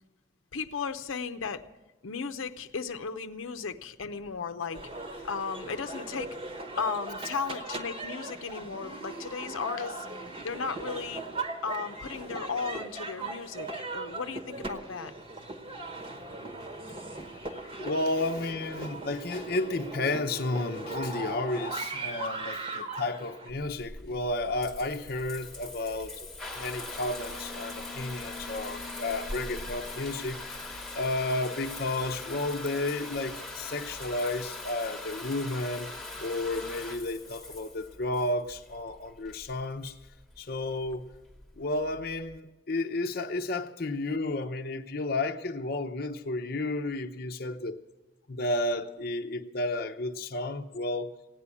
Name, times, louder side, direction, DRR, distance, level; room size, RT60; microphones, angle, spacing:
voice 1, 0.5-1.6 2.0-6.4 6.8-10.1 10.4-11.3 11.6-15.1 17.5-17.8 36.6-36.8, left 5 dB, 85° left, 0.7 m, -35 dB
sound 1, 4.7-23.5, right 2 dB, 30° right, 1.1 m, -39 dB
voice 2, 17.8-26.3 26.6-35.9 36.2-40.0 40.4-41.0 41.6-47.8 48.3-51.1, left 2 dB, 50° left, 0.7 m, -32 dB
Water tap faucet / Bathtub (filling or washing) / Trickle dribble, 23.5-42.4, left 2 dB, 5° left, 1.1 m, -41 dB
16.0 x 9.7 x 8.4 m
head